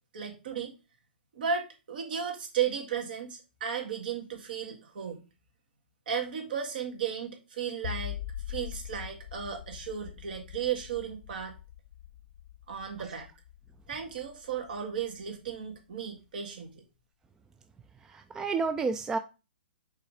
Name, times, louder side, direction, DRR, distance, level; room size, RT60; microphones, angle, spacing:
voice 1, 0.1-0.7 1.3-5.2 6.1-8.2 8.5-11.5 12.7-13.3 13.9-16.8, right 7 dB, 65° right, 1.9 m, -34 dB
sound 1, 7.8-15.0, left 12 dB, 55° left, 0.5 m, -42 dB
voice 2, 18.0-19.2, right 4 dB, 10° right, 0.4 m, -30 dB
5.6 x 3.9 x 4.8 m
hypercardioid pair, 140°, 5 cm